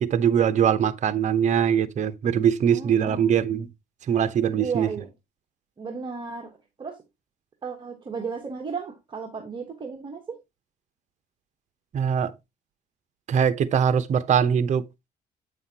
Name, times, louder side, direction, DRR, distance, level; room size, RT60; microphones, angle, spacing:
voice 1, 0.0-3.7 4.1-4.9 11.9-12.3 13.3-14.8, right 8 dB, 50° right, 0.8 m, -22 dB
voice 2, 2.7-3.3 4.6-5.1 5.8-6.5 6.8-7.0 7.6-10.4, right 5 dB, 30° right, 1.3 m, -34 dB
8.2 x 5.7 x 2.8 m
cardioid pair, 105°, 16 cm